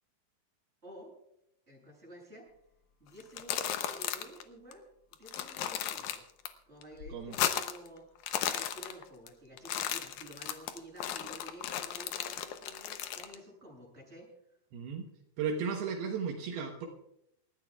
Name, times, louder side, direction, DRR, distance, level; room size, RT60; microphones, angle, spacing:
voice 1, 1.7-2.4 3.0-4.8 5.2-6.2 6.7-14.3 15.7-15.8, right 1 dB, 15° right, -4 dB, 7.8 m, -51 dB
sound 1, 3.2-4.4 4.7-4.8 5.1-6.5 6.8-7.9 8.2-9.3 9.6-13.3, left 10 dB, 85° left, 1.7 m, -35 dB
voice 2, 14.7-15.1 15.4-16.9, right 6 dB, 80° right, 1 dB, 3.1 m, -35 dB
28.5 x 14.5 x 2.4 m, 0.77 s
omnidirectional pair, 4.5 m